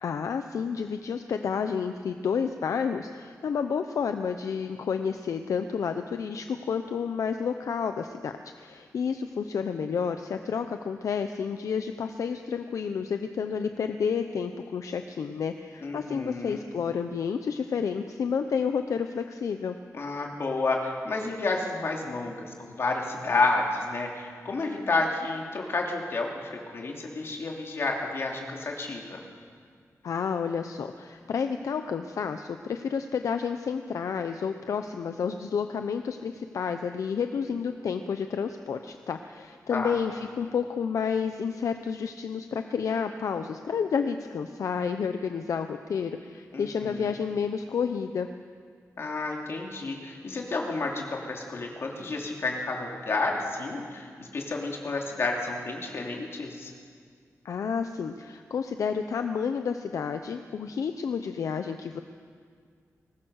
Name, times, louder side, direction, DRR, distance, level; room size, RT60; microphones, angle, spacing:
voice 1, 0.0-19.8 30.0-48.3 57.4-62.0, left 6 dB, 70° left, 7 dB, 0.8 m, -30 dB
voice 2, 15.8-16.6 19.9-29.2 39.7-40.0 46.5-47.1 49.0-56.7, left 3 dB, 50° left, 0 dB, 2.8 m, -30 dB
22.0 x 19.5 x 6.5 m, 2.1 s
wide cardioid pair, 175°, 6 cm